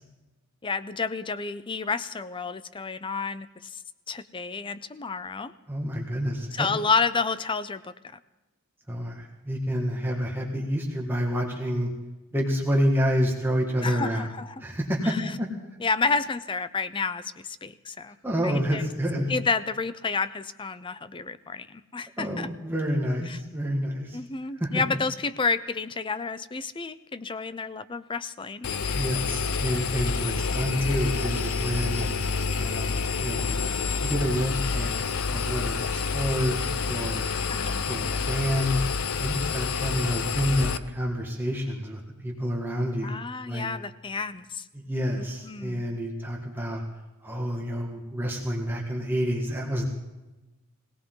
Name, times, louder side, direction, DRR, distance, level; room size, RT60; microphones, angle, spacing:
voice 1, 0.6-3.8 4.1-5.5 6.5-7.9 13.8-14.6 15.0-15.3 15.8-18.2 18.4-18.8 19.3-22.5 23.3-23.4 24.1-28.7 37.5-37.9 43.0-44.6 45.2-45.8, left 4 dB, 25° left, 14 dB, 0.5 m, -30 dB
voice 2, 5.7-6.7 8.9-11.9 12.3-14.3 14.6-15.5 18.2-19.3 22.2-24.2 24.6-24.8 28.9-32.1 32.6-33.7 34.0-36.6 36.8-37.3 37.9-38.8 39.2-43.2 43.4-43.7 44.7-46.8 47.2-49.8, equal, 10° right, -2 dB, 1.8 m, -28 dB
Engine, 28.6-40.8, left 5 dB, 70° left, 0.7 m, -28 dB
21.0 x 18.0 x 3.9 m, 1.1 s
head